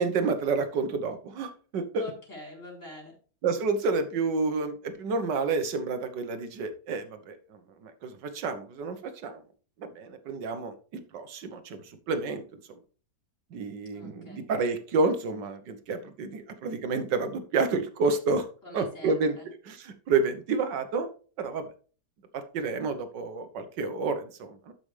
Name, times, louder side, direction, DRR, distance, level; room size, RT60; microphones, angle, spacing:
voice 1, 0.0-2.0 3.4-7.4 7.8-9.0 9.2-9.4 9.8-12.4 13.5-18.4 18.7-19.4 19.7-21.1 21.4-21.7 22.3-24.7, right 4 dB, 80° right, 9 dB, 1.7 m, -29 dB
voice 2, 1.9-3.1 13.9-14.5 18.6-19.5, left 1 dB, 45° left, -2 dB, 4.9 m, -45 dB
12.5 x 6.0 x 3.3 m, 0.40 s
omnidirectional pair, 1.9 m